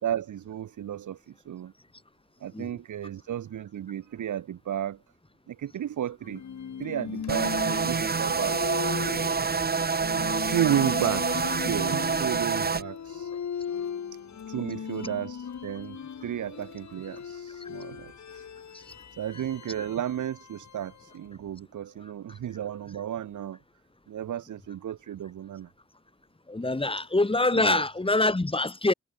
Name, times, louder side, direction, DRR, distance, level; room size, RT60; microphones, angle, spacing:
voice 1, 0.0-1.7 2.4-5.0 5.5-6.4 6.8-9.3 10.4-13.3 14.5-18.5 19.1-23.6 24.1-25.7 27.5-27.8, right 10 dB, 80° right, 1.4 m, -33 dB
sound 1, 6.2-21.3, left 7 dB, 65° left, 2.7 m, -38 dB
sound 2, 7.3-12.8, right 5 dB, 30° right, 0.9 m, -27 dB
voice 2, 26.5-28.9, left 2 dB, 20° left, 1.8 m, -24 dB
supercardioid pair, 45°, 30 cm